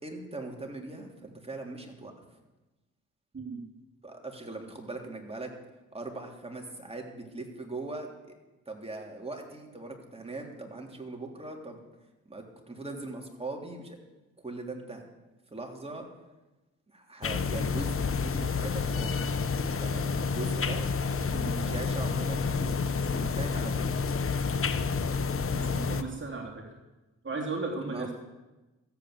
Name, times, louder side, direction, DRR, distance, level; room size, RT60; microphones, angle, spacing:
voice 1, 0.0-2.1 4.0-5.5 5.9-8.1 8.6-11.8 12.3-14.0 14.4-15.1 15.5-16.1 16.9-19.2 19.7-20.9 21.2-22.8 23.1-23.9 27.9-28.1, right 2 dB, 20° right, 1 dB, 3.4 m, -40 dB
voice 2, 3.3-3.6 21.3-21.8 25.5-26.7 27.2-28.1, right 3 dB, 35° right, 1 dB, 3.2 m, -36 dB
sound 1, 17.2-26.0, left 5 dB, 40° left, 1.1 m, -29 dB
14.0 x 8.4 x 8.2 m, 1.1 s
supercardioid pair, 50°, 33 cm